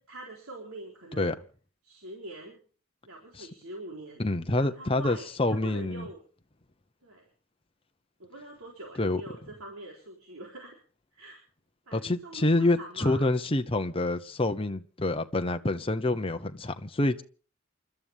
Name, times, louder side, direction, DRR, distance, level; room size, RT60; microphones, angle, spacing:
voice 1, 0.0-1.4 1.8-2.6 3.0-4.2 4.6-6.2 7.0-7.2 8.2-10.8 11.1-11.4 11.9-13.3, right 1 dB, 75° right, 3.9 m, -44 dB
voice 2, 4.2-6.1 9.0-9.2 11.9-17.2, left 2 dB, 25° left, 0.9 m, -27 dB
29.0 x 12.5 x 3.6 m
head